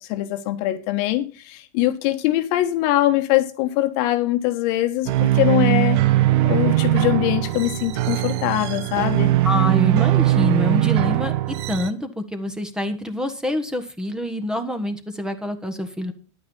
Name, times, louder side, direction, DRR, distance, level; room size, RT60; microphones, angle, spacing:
voice 1, 0.1-6.0 6.4-9.4, left 15 dB, 55° left, 1.4 m, -22 dB
sound 1, 5.1-11.9, right 16 dB, 60° right, 0.9 m, -20 dB
voice 2, 9.4-11.3 11.7-16.1, left 1 dB, 5° right, 1.5 m, -26 dB
10.5 x 9.2 x 5.5 m
hypercardioid pair, 115°, 15 cm